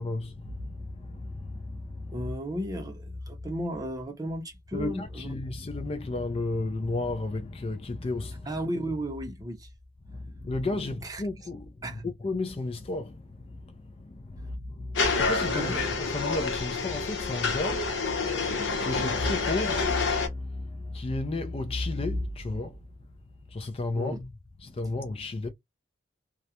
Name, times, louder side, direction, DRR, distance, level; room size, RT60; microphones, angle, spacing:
voice 1, 0.0-2.3 4.7-8.6 10.1-22.8 23.5-24.3 24.6-25.5, left 2 dB, 30° left, 0.4 m, -33 dB
voice 2, 2.1-5.3 8.5-9.7 10.7-11.2 11.8-12.0 15.4-15.9 23.9-24.2, right 1 dB, 20° right, 0.6 m, -34 dB
sound 1, 15.0-20.3, left 4 dB, 70° left, 0.8 m, -28 dB
2.4 x 2.1 x 2.8 m
head